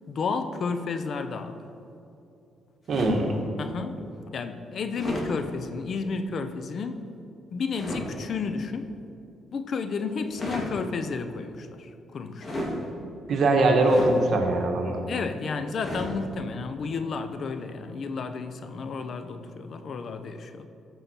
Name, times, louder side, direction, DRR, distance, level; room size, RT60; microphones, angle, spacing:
voice 1, 0.1-1.6 3.6-4.0 4.3-7.1 7.5-8.9 9.5-12.6 15.1-20.7, left 4 dB, 55° left, 9 dB, 0.6 m, -32 dB
sound 1, 2.9-3.3 4.9-5.3 7.7-8.0 10.2-10.7 12.4-12.8 13.8-14.2 15.8-16.1, left 1 dB, 35° left, 2.4 m, -33 dB
voice 2, 2.9-3.3 13.3-15.0, right 2 dB, 60° right, 2 dB, 1.4 m, -22 dB
14.5 x 5.5 x 4.4 m, 2.7 s
cardioid pair, 90°, 0 cm